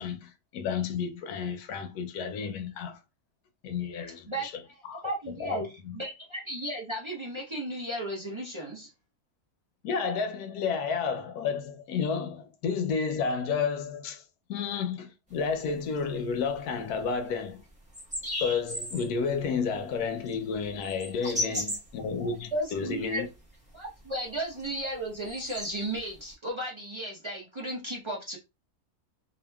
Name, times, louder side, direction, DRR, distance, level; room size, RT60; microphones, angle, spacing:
voice 1, 0.0-3.0 3.6-5.0 5.4-6.0 9.8-14.2 14.5-17.6 18.4-23.3, left 5 dB, 85° left, 1.1 m, -31 dB
voice 2, 4.3-4.8 5.0-8.9 22.5-23.2 23.7-28.4, right 1 dB, 30° right, 0.5 m, -34 dB
sound 1, 15.3-16.7 16.9-17.0 17.4-17.5 17.9-19.1 19.4-22.7 23.0-23.5 23.8-24.1 24.5-26.3, left 1 dB, 5° right, 0.8 m, -36 dB
2.8 x 2.5 x 2.2 m
omnidirectional pair, 1.6 m